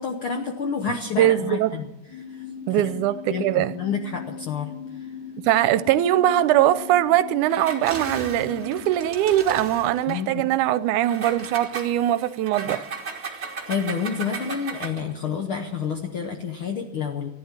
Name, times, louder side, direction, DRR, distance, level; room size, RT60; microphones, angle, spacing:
voice 1, 0.0-1.9 2.3-2.4 2.7-2.9 3.3-3.5 3.7-5.1 10.1-10.4 13.2-17.3, left 6 dB, 70° left, 1.3 m, -29 dB
voice 2, 1.2-1.7 2.7-3.7 5.4-12.9, right 13 dB, 80° right, 2.0 m, -21 dB
sound 1, 2.1-9.0, left 7 dB, 90° left, 3.8 m, -39 dB
Engine, 7.5-10.2 11.0-15.1, right 5 dB, 35° right, 1.1 m, -36 dB
15.0 x 11.0 x 7.3 m
omnidirectional pair, 3.6 m